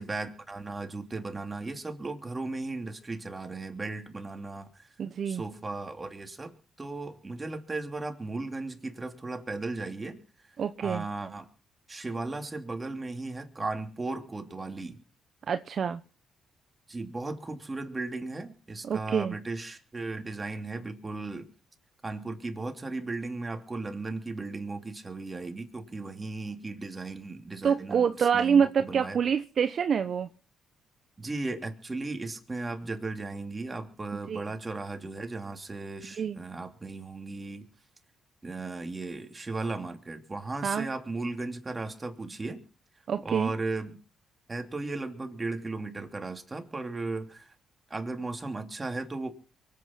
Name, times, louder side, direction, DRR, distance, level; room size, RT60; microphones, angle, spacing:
voice 1, 0.0-4.9 5.2-10.5 10.8-11.5 11.9-15.0 16.9-21.5 22.0-29.2 31.2-37.7 38.4-42.6 43.2-44.0 44.5-47.5 47.9-49.3, right 3 dB, 20° right, 3.0 m, -36 dB
voice 2, 5.0-5.4 10.6-11.0 15.5-16.0 18.8-19.3 27.6-30.3 34.3-34.4 36.2-36.4 40.6-40.9 43.1-43.5, right 7 dB, 55° right, 0.9 m, -26 dB
24.0 x 8.8 x 5.8 m
cardioid pair, 90°, 0 cm